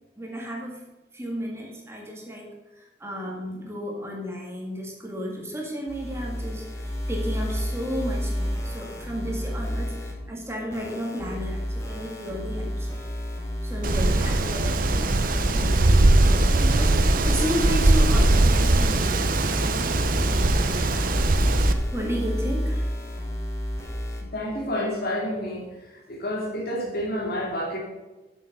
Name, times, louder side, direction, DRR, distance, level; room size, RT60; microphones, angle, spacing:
voice 1, 0.2-0.8 1.1-2.5 2.8-12.9 13.6-19.9 20.5-21.1 21.9-22.9, equal, 15° right, -1 dB, 1.8 m, -33 dB
sound 1, 5.9-10.1 10.7-24.2, equal, 15° left, 1.8 m, -30 dB
Wind, 13.8-21.7, right 2 dB, 50° right, 0.7 m, -21 dB
voice 2, 24.3-25.7 26.1-27.8, equal, 55° left, 0 dB, 2.6 m, -29 dB
8.3 x 6.8 x 6.6 m, 1.1 s
head